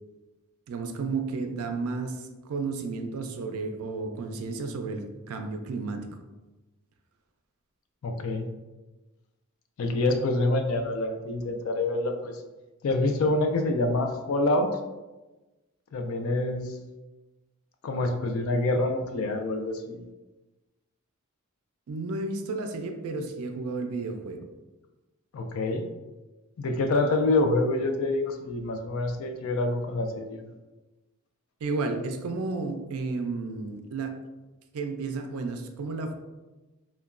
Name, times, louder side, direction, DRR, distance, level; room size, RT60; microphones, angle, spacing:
voice 1, 0.7-6.1 21.9-24.5 31.6-34.2 34.7-36.1, right 3 dB, 80° right, 6 dB, 0.3 m, -32 dB
voice 2, 8.0-8.5 9.8-12.4 12.8-14.7 15.9-16.8 17.8-20.0 25.3-25.8 26.6-30.4, left 2 dB, 70° left, 5 dB, 0.3 m, -26 dB
2.9 x 2.2 x 2.4 m, 1.1 s
head